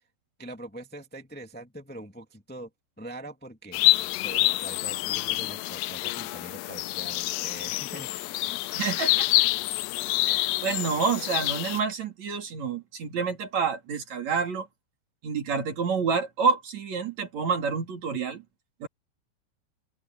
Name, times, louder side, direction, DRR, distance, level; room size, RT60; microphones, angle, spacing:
voice 1, 0.4-2.7 3.0-3.8 4.2-8.6, right 1 dB, 15° left, 0.3 m, -43 dB
sound 1, 3.7-11.8, left 19 dB, 85° left, 2.5 m, -27 dB
voice 2, 8.7-9.4 10.3-14.7 15.2-18.4 18.8-18.9, right 5 dB, 45° right, 3.3 m, -28 dB
open air
omnidirectional pair, 5.3 m